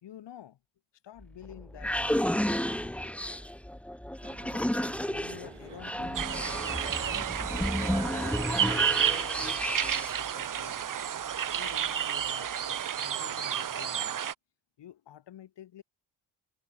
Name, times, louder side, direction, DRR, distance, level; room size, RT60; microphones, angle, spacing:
voice 1, 0.0-0.6 1.0-3.2 4.5-7.3 7.7-10.9 11.5-14.2 14.8-15.8, left 11 dB, 65° left, 2.0 m, -50 dB
sound 1, 1.2-10.3, equal, 5° left, 1.3 m, -32 dB
sound 2, 4.2-9.2, right 12 dB, 70° right, 3.1 m, -47 dB
sound 3, 6.1-14.3, right 9 dB, 45° right, 1.0 m, -31 dB
supercardioid pair, 50°, 46 cm